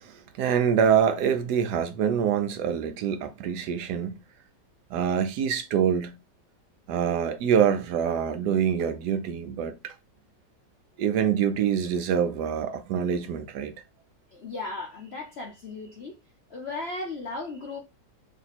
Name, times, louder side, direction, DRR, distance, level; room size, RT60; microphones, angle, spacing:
voice 1, 0.0-4.2 4.9-6.1 6.9-9.9 11.0-13.7, right 8 dB, 75° right, 1.1 m, -25 dB
voice 2, 14.3-16.2 16.5-17.8, left 3 dB, 60° left, 0.6 m, -36 dB
3.5 x 2.7 x 4.1 m
omnidirectional pair, 1.9 m